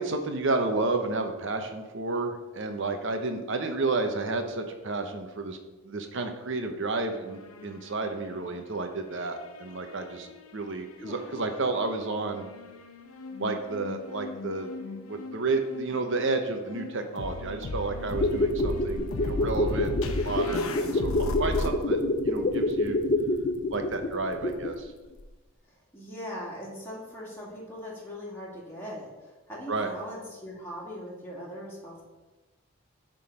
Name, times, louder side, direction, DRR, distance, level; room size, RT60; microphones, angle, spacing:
voice 1, 0.0-5.6 5.8-10.3 10.5-12.5 13.4-14.7 15.0-22.0 22.2-23.0 23.7-24.9 29.7-29.9, right 3 dB, 55° right, 5 dB, 0.9 m, -31 dB
sound 1, 7.2-8.8 9.1-10.5 11.2-21.7, left 2 dB, 75° left, 0.8 m, -37 dB
voice 2, 11.0-11.3 25.9-32.0, equal, 10° left, -6 dB, 2.1 m, -40 dB
sound 2, 18.0-24.9 25.2-25.3, left 1 dB, 35° left, 0.5 m, -27 dB
10.0 x 3.8 x 5.1 m, 1.2 s
head